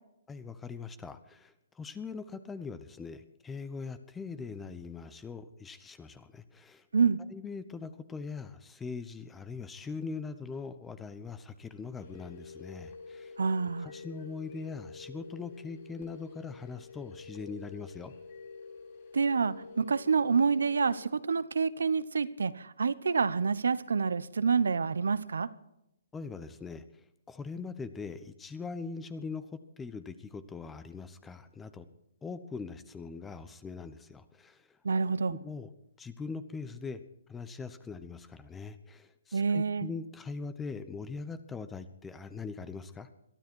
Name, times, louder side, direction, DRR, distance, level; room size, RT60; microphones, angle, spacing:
voice 1, 0.3-6.9 7.3-13.4 13.8-18.1 26.1-31.9 32.2-34.8 35.3-35.7 36.0-37.0 37.3-43.1, left 4 dB, 10° left, 13 dB, 1.0 m, -41 dB
sound 1, 12.0-21.1, left 4 dB, 50° left, 6.9 m, -48 dB
voice 2, 13.4-13.9 19.1-25.5 34.8-35.3 39.3-39.9, right 5 dB, 75° right, 17 dB, 1.0 m, -27 dB
22.0 x 13.0 x 4.6 m, 0.83 s
figure-of-eight pair, 130°, 0 cm